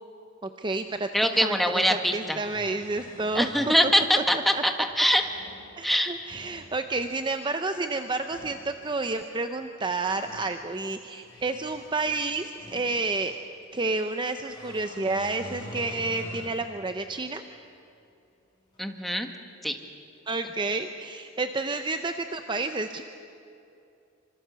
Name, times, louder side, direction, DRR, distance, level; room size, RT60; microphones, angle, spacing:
voice 1, 0.6-1.1 1.3-3.7 4.2-4.3 4.5-4.6 5.8-13.4 13.7-17.4 20.3-23.0, right 3 dB, 25° right, 7 dB, 0.7 m, -30 dB
voice 2, 1.1-2.4 3.3-4.7 5.0-5.2 5.8-6.1 18.8-19.3 19.6-19.8, equal, ahead, 5 dB, 1.5 m, -23 dB
sound 1, 1.3-1.4 2.2-3.9 4.9-5.6 6.1-6.6 8.2-8.6 9.6-10.5 11.1-13.3 14.5-16.6 17.1-17.2 18.7-18.8, equal, 20° left, 7.6 m, -45 dB
26.0 x 26.0 x 7.0 m, 2.7 s
head